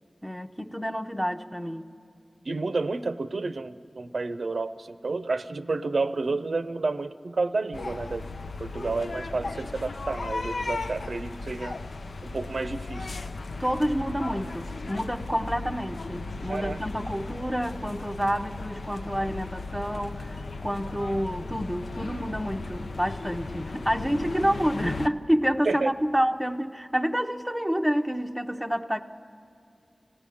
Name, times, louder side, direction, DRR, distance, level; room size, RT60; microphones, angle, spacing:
voice 1, 0.2-1.9 13.6-29.0, equal, ahead, 4 dB, 0.7 m, -28 dB
voice 2, 2.4-8.3 8.6-11.8 12.2-13.2 16.5-16.8 25.7-25.9, right 3 dB, 75° right, 11 dB, 0.6 m, -30 dB
sound 1, 7.7-25.1, left 3 dB, 85° left, 0.5 m, -36 dB
24.5 x 16.5 x 9.9 m, 2.6 s
wide cardioid pair, 80°, 0 cm